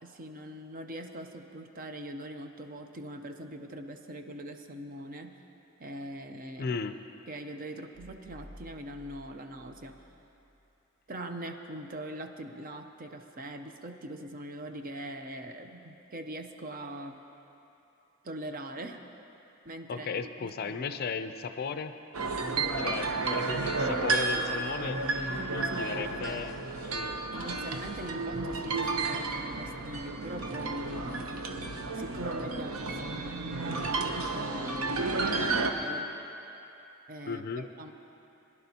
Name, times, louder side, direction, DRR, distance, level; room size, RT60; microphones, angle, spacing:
voice 1, 0.0-5.4 5.8-6.8 7.3-10.0 11.1-17.2 18.2-19.0 19.6-21.0 21.6-21.8 23.3-23.8 25.3-26.4 27.3-31.1 31.9-36.1 37.1-37.9, right 1 dB, 40° right, 5 dB, 0.6 m, -42 dB
voice 2, 6.6-7.0 19.9-21.9 22.8-25.0 25.5-26.6 26.9-27.2 35.3-35.6 37.3-37.7, left 5 dB, 45° left, 10 dB, 0.4 m, -35 dB
sound 1, 7.9-10.8, equal, 15° right, 3.2 m, -53 dB
sound 2, 22.1-35.7, right 3 dB, 85° right, 0.8 m, -32 dB
22.5 x 11.0 x 2.8 m, 2.9 s
head